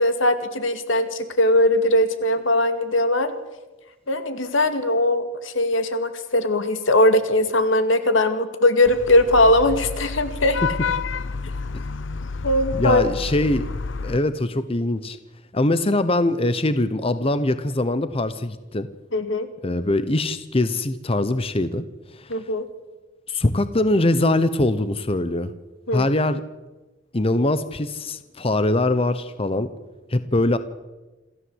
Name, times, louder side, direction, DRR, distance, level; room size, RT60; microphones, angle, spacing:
voice 1, 0.0-3.3 4.1-10.6 12.4-13.0 19.1-19.5 22.3-22.6 25.9-26.1, left 1 dB, 85° left, 9 dB, 2.2 m, -20 dB
Vehicle horn car horn honking / Traffic noise roadway noise, 8.9-14.2, left 4 dB, 70° left, 0.7 m, -29 dB
voice 2, 12.7-13.7 14.0-15.2 15.5-18.9 19.6-21.8 22.1-22.4 23.3-25.5 25.9-26.4 27.1-29.7 30.1-30.6, left 2 dB, 30° left, 12 dB, 0.9 m, -22 dB
27.5 x 14.5 x 8.0 m, 1.2 s
head